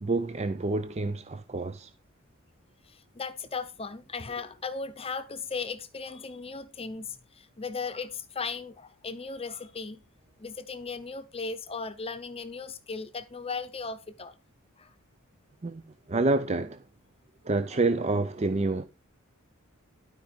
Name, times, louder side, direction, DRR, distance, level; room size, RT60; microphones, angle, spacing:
voice 1, 0.0-1.9 15.6-15.8 16.1-16.8 17.4-18.8, right 3 dB, 30° right, 0.6 m, -28 dB
voice 2, 2.9-10.0 10.4-14.3 14.8-14.9, left 4 dB, 25° left, 0.8 m, -37 dB
12.5 x 5.1 x 5.2 m
head